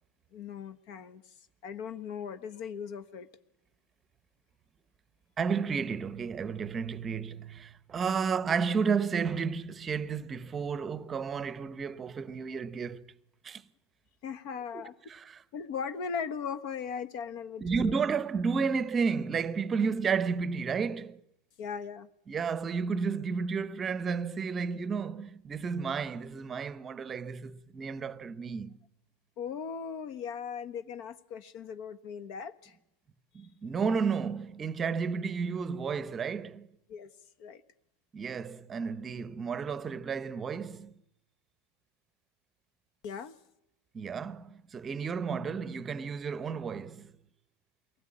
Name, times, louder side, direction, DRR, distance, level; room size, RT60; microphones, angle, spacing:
voice 1, 0.3-1.3 1.6-3.3 14.2-14.9 15.5-17.9 21.6-22.1 29.4-32.8 36.9-37.1 37.4-37.6 43.0-43.3, left 6 dB, 55° left, 1.2 m, -38 dB
voice 2, 5.4-13.0 13.4-13.6 14.7-15.4 17.6-21.2 22.3-28.8 33.3-36.7 38.1-41.0 43.9-47.1, right 5 dB, 25° right, 0.8 m, -32 dB
23.0 x 16.5 x 8.8 m
supercardioid pair, 125°, 0 cm